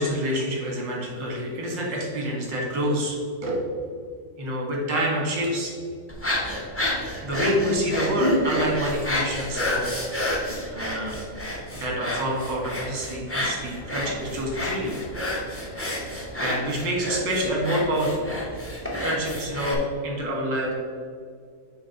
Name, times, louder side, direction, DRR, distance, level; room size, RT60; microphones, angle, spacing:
voice 1, 0.0-3.6 4.4-5.7 7.2-10.5 10.7-11.2 11.8-14.9 16.0-18.3 18.6-18.7 19.0-20.7, equal, 90° right, -1 dB, 2.3 m, -27 dB
sound 1, 6.1-19.7, left 1 dB, 15° left, 0.6 m, -29 dB
7.1 x 3.2 x 5.8 m, 2.1 s
omnidirectional pair, 1.9 m